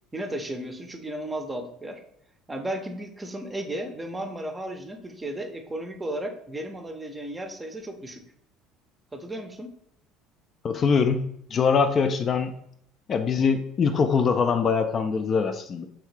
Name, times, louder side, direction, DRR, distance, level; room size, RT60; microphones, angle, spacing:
voice 1, 0.1-2.0 2.5-8.2 9.1-9.7, right 1 dB, 15° right, 5 dB, 0.6 m, -34 dB
voice 2, 10.6-11.2 11.5-12.5 13.1-15.9, left 5 dB, 40° left, 7 dB, 0.3 m, -23 dB
3.5 x 2.7 x 3.2 m, 0.73 s
figure-of-eight pair, 60°, 0 cm